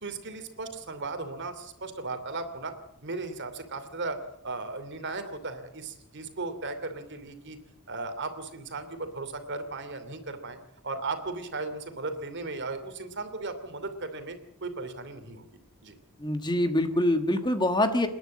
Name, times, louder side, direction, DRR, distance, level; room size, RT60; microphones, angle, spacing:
voice 1, 0.0-2.7 3.0-4.2 4.4-7.6 7.9-10.6 10.8-15.4 15.8-16.0, right 3 dB, 55° right, 8 dB, 2.8 m, -36 dB
voice 2, 16.2-18.1, left 1 dB, 20° left, 8 dB, 1.4 m, -25 dB
28.5 x 10.5 x 8.5 m, 0.85 s
head